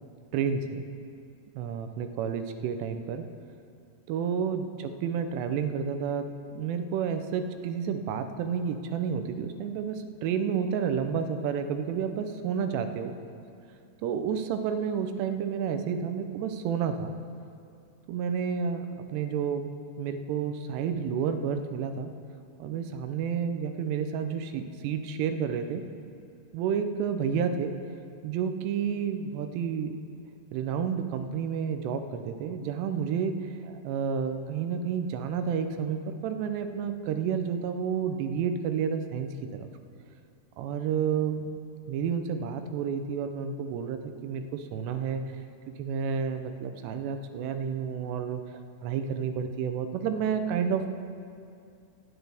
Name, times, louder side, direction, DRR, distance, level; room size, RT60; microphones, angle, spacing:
voice 1, 0.3-0.8 1.6-3.2 4.1-6.3 6.6-13.1 14.0-17.1 18.1-18.9 19.1-19.7 20.0-22.1 22.6-25.8 26.5-27.7 28.2-29.9 30.5-39.7 40.6-41.6 41.9-45.2 45.8-48.4 48.8-50.9, right 7 dB, 90° right, 8 dB, 2.9 m, -30 dB
19.0 x 10.0 x 3.5 m, 2.4 s
omnidirectional pair, 4.8 m